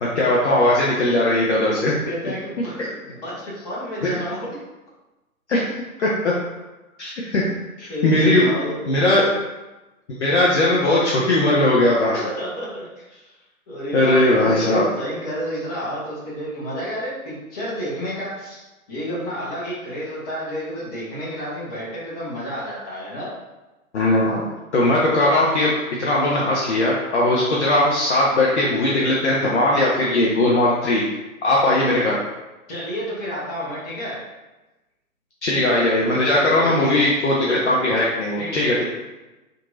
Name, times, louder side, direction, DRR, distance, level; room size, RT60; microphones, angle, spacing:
voice 1, 0.0-1.9 2.8-2.9 4.0-4.1 5.5-5.6 6.0-6.4 7.0-7.5 7.8-8.5 8.9-9.4 10.2-12.2 13.9-14.9 23.9-24.4 24.7-25.7 26.0-31.0 31.4-32.2 35.4-38.8, left 1 dB, 55° left, -5 dB, 0.6 m, -19 dB
voice 2, 2.0-2.8 3.0-4.6 7.9-8.9 11.0-11.1 12.1-13.1 13.7-18.6 18.9-23.3 32.7-34.2 36.4-37.0 38.4-38.8, equal, 25° left, -7 dB, 0.9 m, -30 dB
2.8 x 2.6 x 2.5 m, 1.1 s
figure-of-eight pair, 125°, 43 cm